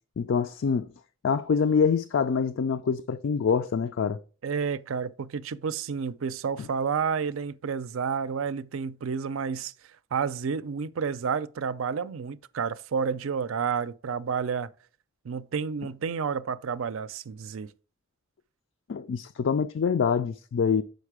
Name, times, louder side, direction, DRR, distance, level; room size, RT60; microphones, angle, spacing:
voice 1, 0.2-0.9 1.2-4.2 18.9-20.8, left 6 dB, 65° left, 0.4 m, -25 dB
voice 2, 4.4-9.7 10.1-14.7 15.2-17.7, right 6 dB, 80° right, 0.4 m, -30 dB
6.5 x 5.3 x 4.8 m
head